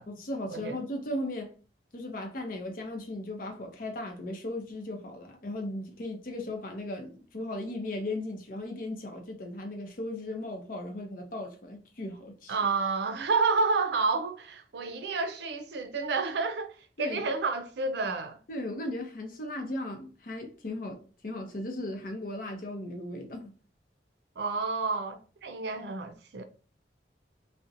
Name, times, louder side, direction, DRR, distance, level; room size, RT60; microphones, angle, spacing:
voice 1, 0.1-1.5 1.9-12.6 17.0-17.2 18.5-23.5, left 1 dB, 50° left, 0.6 m, -37 dB
voice 2, 12.5-18.4 24.4-26.4, right 4 dB, 75° right, 0.4 m, -30 dB
2.7 x 2.1 x 2.5 m
head